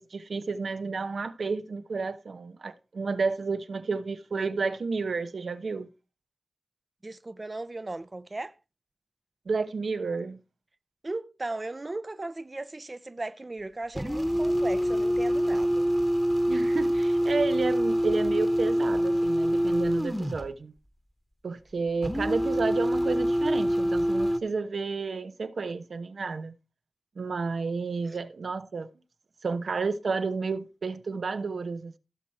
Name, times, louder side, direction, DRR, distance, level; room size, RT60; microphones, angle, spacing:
voice 1, 0.0-5.9 9.5-10.4 16.5-20.7 21.4-26.5 27.2-28.9 29.4-32.0, right 4 dB, 85° right, 1.0 m, -31 dB
voice 2, 7.0-8.5 11.0-15.9, right 2 dB, 35° right, 0.7 m, -37 dB
sound 1, 14.0-20.5 22.0-24.4, equal, 5° left, 1.3 m, -25 dB
16.0 x 6.4 x 4.3 m
wide cardioid pair, 65°, 0 cm